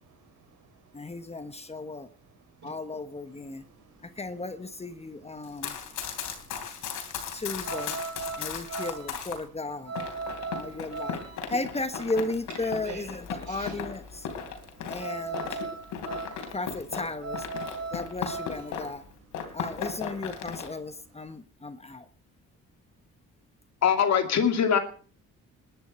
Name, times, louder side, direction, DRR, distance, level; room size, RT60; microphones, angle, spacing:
voice 1, 0.0-1.2 2.1-2.2 2.5-2.8 3.5-3.9 5.4-5.5 5.8-7.4 8.5-8.6 10.7-10.8 12.6-13.8 14.2-15.5, right 6 dB, 75° right, 3 dB, 5.4 m, -51 dB
voice 2, 0.9-2.1 2.6-3.6 4.2-5.8 7.3-8.0 8.4-9.9 10.6-11.2 11.5-14.3 14.9-15.6 16.5-17.4 17.9-19.0 19.5-22.0, left 2 dB, 20° left, 11 dB, 1.1 m, -35 dB
sound 1, 3.3-21.4, right 4 dB, 55° right, 3.7 m, -40 dB
Run, 5.4-9.4 10.0-19.0 19.3-20.7, left 7 dB, 80° left, 3.3 m, -37 dB
voice 3, 23.8-24.8, left 7 dB, 60° left, 6 dB, 2.5 m, -22 dB
20.5 x 11.0 x 4.3 m, 0.42 s
cardioid pair, 90°, 30 cm